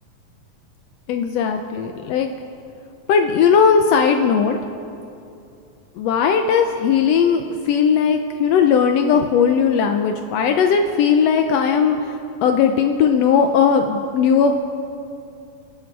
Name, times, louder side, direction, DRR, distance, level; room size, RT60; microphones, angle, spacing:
voice 1, 1.1-2.3 3.1-4.6 6.0-14.5, left 6 dB, 85° left, 5 dB, 1.4 m, -17 dB
28.5 x 10.0 x 4.7 m, 2.7 s
omnidirectional pair, 3.7 m